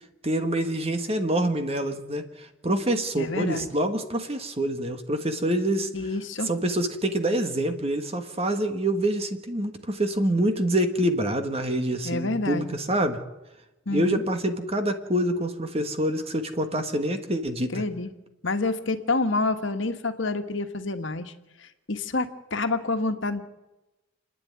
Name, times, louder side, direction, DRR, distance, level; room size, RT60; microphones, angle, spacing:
voice 1, 0.2-5.9 6.4-13.2 13.9-17.7, right 1 dB, 30° right, 7 dB, 1.6 m, -26 dB
voice 2, 3.2-3.7 5.9-6.5 12.0-12.7 13.8-14.2 17.7-18.1 18.4-21.3 21.6-23.4, left 3 dB, 70° left, 7 dB, 1.5 m, -28 dB
29.5 x 10.0 x 9.5 m, 1.0 s
head